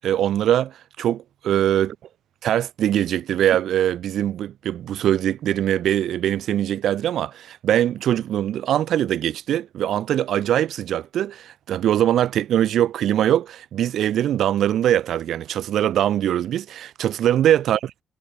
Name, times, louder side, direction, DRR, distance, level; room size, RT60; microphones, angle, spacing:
voice 1, 0.0-1.9 2.4-17.9, right 11 dB, 85° right, 0.4 m, -22 dB
wide cardioid pair, 150°, 0 cm